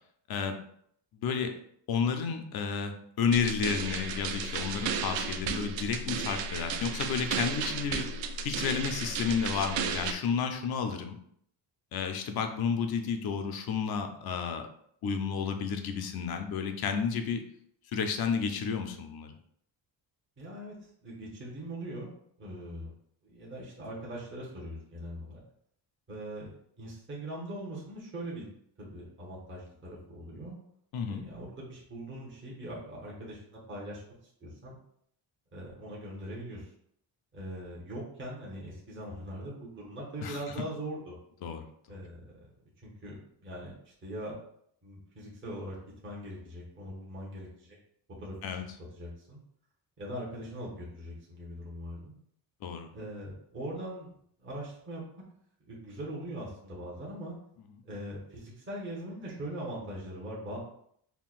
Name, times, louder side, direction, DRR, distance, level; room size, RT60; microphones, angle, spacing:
voice 1, 0.3-0.6 1.2-1.5 1.9-8.1 8.4-11.2 11.9-14.7 15.0-17.5 17.9-19.4 30.9-31.2 40.2-40.4 41.4-41.7 48.4-48.6 52.6-52.9, left 6 dB, 60° left, 6 dB, 0.6 m, -31 dB
sound 1, 3.3-10.1, right 5 dB, 85° right, 0.5 m, -34 dB
voice 2, 20.4-20.8 21.0-22.1 22.4-22.9 23.2-25.4 26.1-28.5 28.8-30.6 31.0-34.0 34.4-34.8 35.5-36.7 37.3-41.1 41.9-42.5 42.8-44.3 44.8-45.8 46.0-47.8 48.2-48.5 48.9-49.4 50.0-52.2 52.9-54.1 54.4-55.0 55.7-57.4 57.8-60.6, right 1 dB, 25° right, -5 dB, 1.0 m, -41 dB
5.7 x 2.2 x 2.4 m, 0.68 s
cardioid pair, 160°, 43 cm